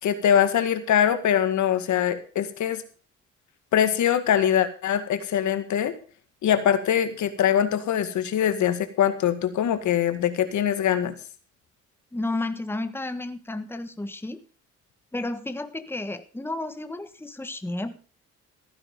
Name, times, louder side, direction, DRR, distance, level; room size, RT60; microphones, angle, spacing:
voice 1, 0.0-2.8 3.7-5.9 6.4-11.1, left 9 dB, 75° left, 10 dB, 2.0 m, -23 dB
voice 2, 12.1-14.4 15.1-18.0, left 2 dB, 5° left, 9 dB, 1.4 m, -32 dB
15.5 x 10.0 x 5.4 m, 0.38 s
cardioid pair, 90°, 30 cm